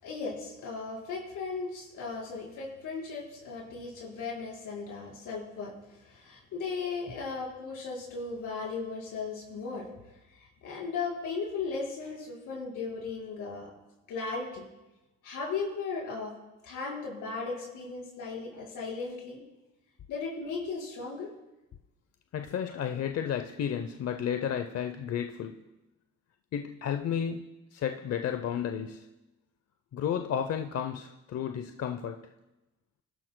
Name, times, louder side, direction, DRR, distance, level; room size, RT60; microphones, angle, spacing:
voice 1, 0.0-9.9 10.3-13.7 14.1-14.6 15.2-16.3 16.6-19.4 20.1-21.3, left 4 dB, 85° left, -3 dB, 4.7 m, -36 dB
voice 2, 22.3-25.6 26.5-29.1 29.9-32.2, left 8 dB, 55° left, 7 dB, 0.7 m, -32 dB
27.5 x 12.5 x 2.2 m, 1.0 s
cardioid pair, 90°, 30 cm